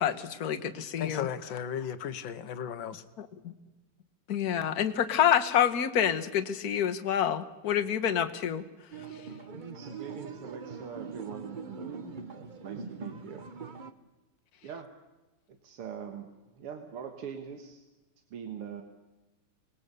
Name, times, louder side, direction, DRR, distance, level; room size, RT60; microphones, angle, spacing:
voice 1, 0.0-1.3 3.2-3.5 4.3-8.6 12.1-12.2, left 9 dB, 50° left, 1.5 m, -28 dB
voice 2, 1.0-3.0, left 8 dB, 65° left, 1.8 m, -35 dB
sound 1, 8.9-13.9, right 5 dB, 45° right, 0.6 m, -42 dB
voice 3, 9.5-13.4 14.6-14.9 15.6-17.8 18.3-18.8, right 7 dB, 90° right, 2.4 m, -43 dB
26.0 x 20.0 x 6.8 m
omnidirectional pair, 2.4 m